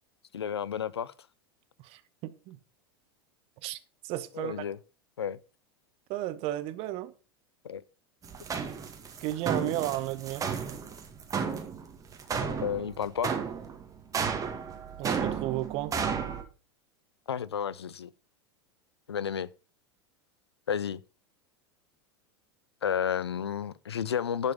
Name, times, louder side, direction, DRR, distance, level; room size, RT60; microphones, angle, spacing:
voice 1, 0.3-1.1 4.3-4.8 5.2-5.4 7.6-7.8 12.4-13.4 17.3-18.1 19.1-19.5 20.7-21.0 22.8-24.5, left 8 dB, 80° left, 0.6 m, -31 dB
voice 2, 1.8-2.6 3.6-4.5 6.1-7.1 9.2-10.5 15.0-15.9, right 15 dB, 45° right, 1.0 m, -33 dB
sound 1, 8.2-16.4, right 6 dB, 25° right, 2.0 m, -33 dB
11.0 x 5.5 x 5.6 m
figure-of-eight pair, 85°, 13 cm